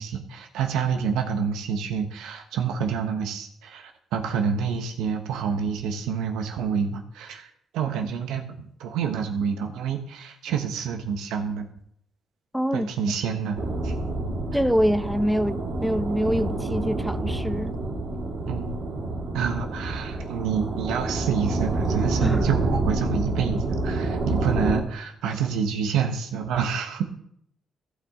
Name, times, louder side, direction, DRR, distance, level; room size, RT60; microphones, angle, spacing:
voice 1, 0.0-11.7 12.7-13.9 18.5-18.7 19.3-27.0, right 7 dB, 90° right, 1.2 m, -28 dB
voice 2, 12.5-12.9 14.5-17.8 22.2-22.5, equal, ahead, 0.4 m, -25 dB
sound 1, 13.6-24.8, right 2 dB, 60° right, 3.1 m, -28 dB
15.0 x 5.6 x 3.8 m
cardioid pair, 90°, 0 cm